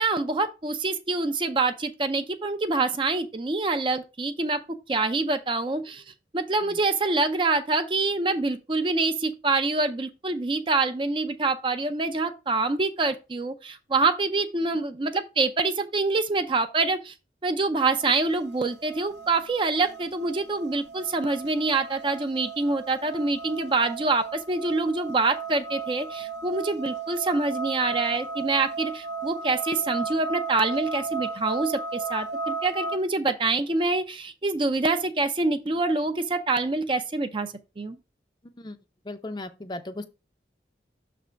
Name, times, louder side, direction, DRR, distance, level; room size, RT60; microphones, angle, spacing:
voice 1, 0.0-4.6 4.9-6.0 6.3-17.1 17.4-38.0, right 3 dB, 25° right, 0.5 m, -26 dB
sound 1, 18.0-33.0, right 4 dB, 70° right, 0.7 m, -35 dB
voice 2, 39.1-40.0, left 2 dB, 25° left, 0.5 m, -36 dB
6.5 x 3.4 x 5.0 m
head